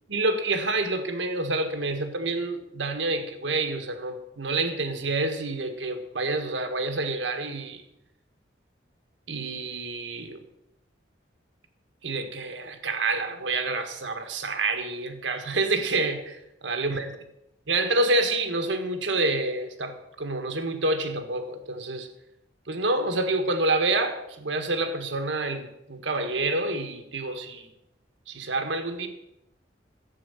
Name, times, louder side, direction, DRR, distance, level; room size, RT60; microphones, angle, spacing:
voice 1, 0.1-7.8 9.3-10.4 12.0-17.1 17.7-22.1 22.7-27.7 28.3-29.1, right 2 dB, 90° right, 7 dB, 1.6 m, -28 dB
12.0 x 8.4 x 7.0 m, 0.85 s
head